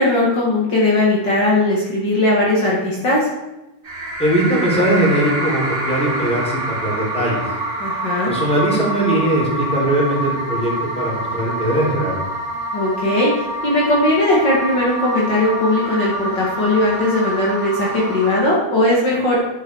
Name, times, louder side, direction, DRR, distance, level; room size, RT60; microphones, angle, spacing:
voice 1, 0.0-3.3 7.8-8.3 12.7-19.4, left 1 dB, 80° left, -4 dB, 1.0 m, -18 dB
sound 1, 3.8-18.4, right 1 dB, 25° right, 2.9 m, -26 dB
voice 2, 4.2-7.4 8.3-12.2, right 1 dB, ahead, -4 dB, 3.1 m, -20 dB
12.0 x 11.0 x 4.8 m, 1.0 s
omnidirectional pair, 6.0 m